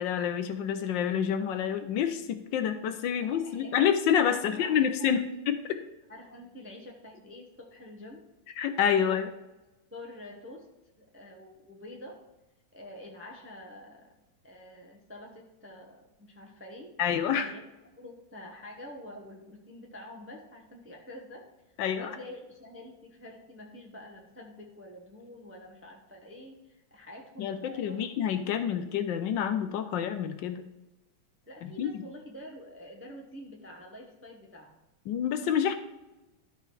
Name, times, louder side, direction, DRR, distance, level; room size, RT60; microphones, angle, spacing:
voice 1, 0.0-5.8 8.6-9.3 17.0-17.5 21.8-22.2 27.4-30.7 31.6-31.9 35.1-35.7, left 8 dB, 75° left, 9 dB, 1.2 m, -28 dB
voice 2, 3.2-3.9 4.3-5.4 6.1-8.2 8.9-9.2 9.9-10.7 11.0-12.2 12.7-14.1 14.4-17.6 18.0-21.5 22.0-28.1 31.5-34.8, left 1 dB, 15° right, 0 dB, 0.5 m, -47 dB
11.5 x 4.3 x 4.7 m, 1.0 s
omnidirectional pair, 2.2 m